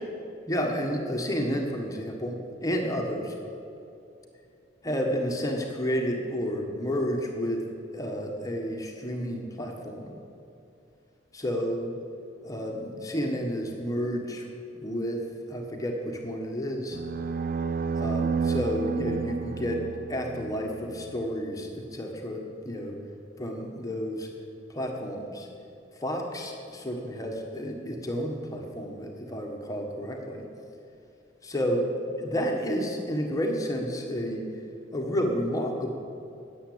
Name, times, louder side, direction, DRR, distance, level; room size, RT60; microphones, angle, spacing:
voice 1, 0.5-3.3 4.8-7.6 7.9-10.1 11.3-12.0 12.4-14.5 14.7-17.0 17.9-23.0 23.4-24.3 24.7-25.5 26.0-30.4 31.4-31.9 32.2-34.5 34.9-35.9, equal, 20° left, 1 dB, 1.4 m, -31 dB
sound 1, 16.9-21.2, right 5 dB, 45° right, 0.5 m, -31 dB
12.5 x 8.8 x 8.7 m, 2.6 s
head